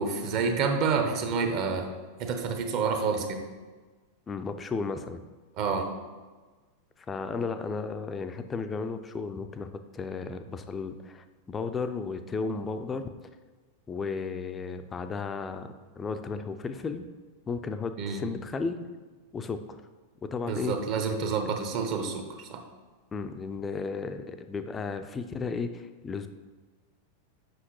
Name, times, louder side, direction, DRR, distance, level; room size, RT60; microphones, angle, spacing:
voice 1, 0.0-1.9 2.2-3.4 5.6-5.9 18.0-18.2 20.5-22.6, right 5 dB, 40° right, 5 dB, 0.8 m, -28 dB
voice 2, 4.3-5.2 7.1-13.1 13.9-17.0 17.5-18.8 19.3-19.8 20.2-20.8 23.1-26.3, left 4 dB, 20° left, 9 dB, 0.4 m, -34 dB
7.8 x 5.6 x 3.1 m, 1.3 s
figure-of-eight pair, 90°, 0 cm